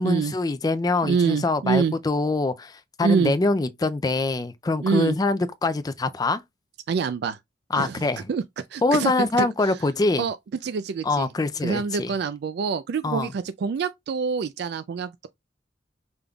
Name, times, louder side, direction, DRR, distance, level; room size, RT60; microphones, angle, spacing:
voice 1, 0.0-6.4 7.7-8.3 8.8-10.3 11.0-12.1 13.0-13.3, left 3 dB, 20° left, 0.4 m, -24 dB
voice 2, 1.0-1.9 3.0-3.3 4.8-5.2 6.9-7.4 7.8-8.0 8.3-9.1 9.4-9.7 10.2-10.4 10.6-11.3 11.6-15.3, right 5 dB, 65° right, 0.3 m, -26 dB
5.1 x 3.5 x 2.3 m
head